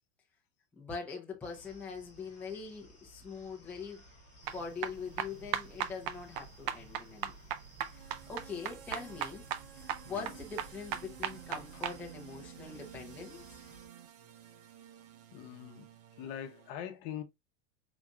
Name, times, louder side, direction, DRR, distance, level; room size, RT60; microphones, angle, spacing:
voice 1, 0.8-4.0 4.5-7.4 7.9-9.5 9.7-13.4, left 5 dB, 5° left, 0.6 m, -43 dB
sound 1, 1.4-13.9, equal, 20° left, 2.6 m, -58 dB
sound 2, 3.7-16.7, right 10 dB, 65° right, 1.0 m, -55 dB
sound 3, 4.4-12.0, right 10 dB, 40° right, 0.5 m, -38 dB
voice 2, 15.3-15.8 16.2-17.2, left 10 dB, 45° left, 0.9 m, -42 dB
4.8 x 4.1 x 2.3 m
supercardioid pair, 170°, 32 cm